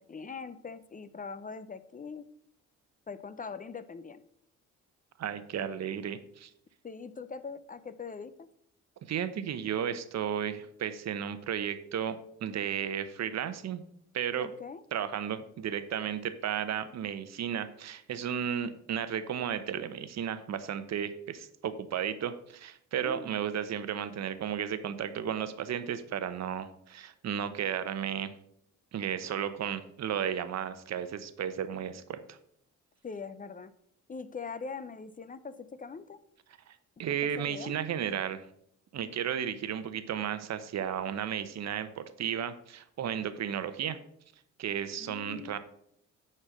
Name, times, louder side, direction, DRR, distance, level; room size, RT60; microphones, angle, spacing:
voice 1, 0.0-2.2 3.1-4.2 6.8-8.5 14.4-14.8 23.0-23.3 33.0-33.7 34.1-36.2 37.2-37.7 45.0-45.6, left 5 dB, 25° left, 13 dB, 0.6 m, -42 dB
voice 2, 5.2-6.5 9.1-13.8 14.1-14.5 14.9-28.3 28.9-32.4 36.7-38.4 38.9-44.0 44.6-45.6, right 8 dB, 60° right, 12 dB, 0.9 m, -34 dB
10.0 x 4.4 x 6.2 m, 0.70 s
cardioid pair, 90°, 30 cm